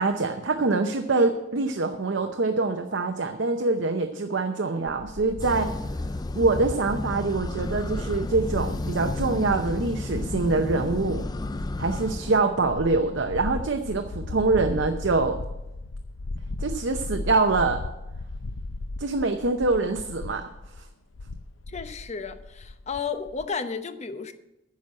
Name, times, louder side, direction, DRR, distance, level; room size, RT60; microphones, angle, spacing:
voice 1, 0.0-5.7 6.4-11.2 11.8-15.4 16.6-17.8 19.0-20.4, right 3 dB, 65° right, 6 dB, 0.7 m, -24 dB
sound 1, 4.9-23.5, left 2 dB, 80° left, 0.6 m, -37 dB
sound 2, 5.4-12.4, left 2 dB, 20° left, 0.4 m, -32 dB
voice 2, 21.7-24.3, left 5 dB, 35° left, 9 dB, 0.8 m, -33 dB
9.9 x 6.2 x 8.6 m, 0.94 s
head